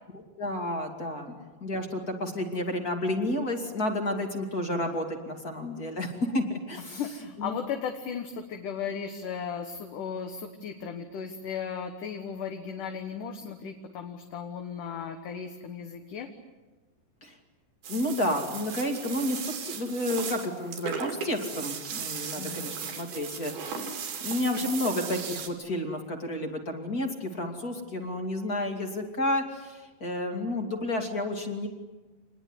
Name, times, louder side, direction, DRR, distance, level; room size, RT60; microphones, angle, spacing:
voice 1, 0.1-7.0 7.4-7.6 17.2-17.4 17.9-31.7, left 1 dB, 30° left, 3 dB, 2.3 m, -31 dB
voice 2, 6.9-16.3 22.4-22.7, left 7 dB, 65° left, 5 dB, 2.8 m, -36 dB
sound 1, 17.8-25.5, right 6 dB, 90° right, 4.7 m, -37 dB
27.0 x 20.5 x 9.7 m, 1.2 s
omnidirectional pair, 4.3 m